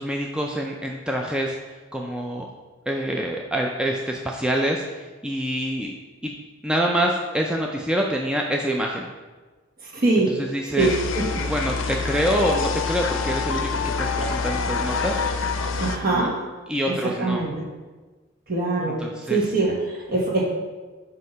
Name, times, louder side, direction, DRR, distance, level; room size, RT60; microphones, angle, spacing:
voice 1, 0.0-1.5 1.9-2.5 2.9-5.9 6.2-6.4 6.6-9.1 10.3-11.0 11.4-15.2 16.1-16.3 16.7-17.4 18.8-19.5, equal, 5° right, 0 dB, 0.4 m, -26 dB
voice 2, 9.9-10.3 10.8-11.2 15.8-16.4 17.2-17.5 18.5-19.0 19.3-19.7 20.1-20.4, right 3 dB, 50° right, -2 dB, 1.3 m, -22 dB
sound 1, 10.8-16.0, left 4 dB, 70° left, 0.5 m, -26 dB
7.7 x 2.8 x 5.4 m, 1.3 s
head